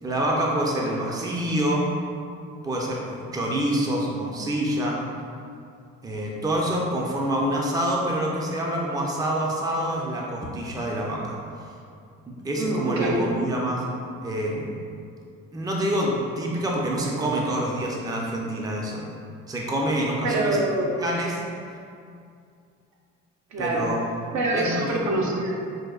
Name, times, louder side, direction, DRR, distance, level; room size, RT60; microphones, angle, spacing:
voice 1, 0.0-1.9 2.6-5.0 6.0-11.4 12.3-13.8 14.2-14.8 15.5-19.0 19.5-20.6 21.0-21.4 23.6-24.1 24.5-25.0, right 1 dB, 15° right, -2 dB, 0.4 m, -26 dB
voice 2, 12.6-13.2 20.2-21.1 23.5-23.9 24.3-25.6, right 2 dB, 70° right, -1 dB, 0.6 m, -25 dB
4.7 x 2.2 x 2.3 m, 2.4 s
cardioid pair, 90°, 30 cm